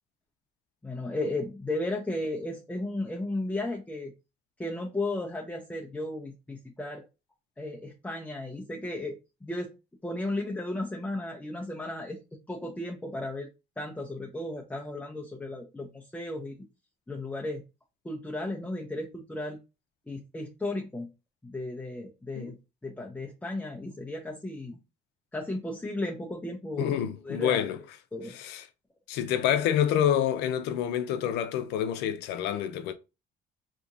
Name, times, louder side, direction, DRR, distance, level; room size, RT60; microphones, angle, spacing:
voice 1, 0.8-4.1 4.6-7.0 7.6-9.7 10.0-12.2 12.5-13.5 13.8-16.6 17.1-17.6 18.0-19.6 20.1-21.1 21.4-22.5 22.8-24.8 25.3-26.9 27.2-27.6 28.1-28.3, left 2 dB, 10° left, 0.6 m, -34 dB
voice 2, 26.8-27.8 28.3-28.6 29.1-32.9, left 10 dB, 90° left, 0.5 m, -27 dB
3.4 x 2.9 x 2.6 m
cardioid pair, 110°, 17 cm